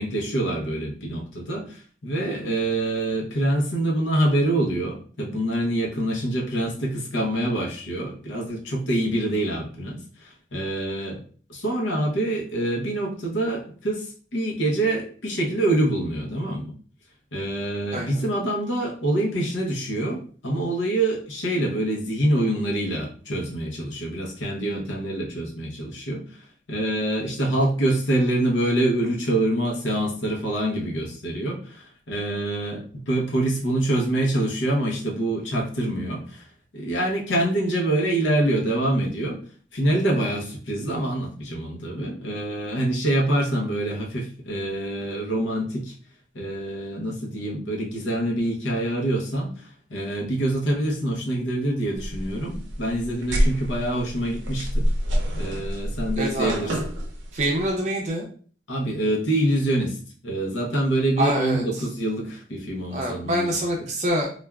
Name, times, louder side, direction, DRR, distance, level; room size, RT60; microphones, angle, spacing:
voice 1, 0.0-11.2 11.5-14.1 14.3-16.7 17.3-26.3 26.7-36.4 36.7-39.4 39.7-45.9 46.3-54.9 55.4-56.7 58.7-60.0 60.2-63.6, right 1 dB, 80° left, -1 dB, 0.8 m, -25 dB
sound 1, 52.0-57.7, equal, 85° right, 0.6 m, -27 dB
voice 2, 56.2-56.7 57.3-58.3 61.2-61.8 62.9-64.3, right 1 dB, 40° right, 0 dB, 0.5 m, -25 dB
3.4 x 2.4 x 2.2 m, 0.43 s
head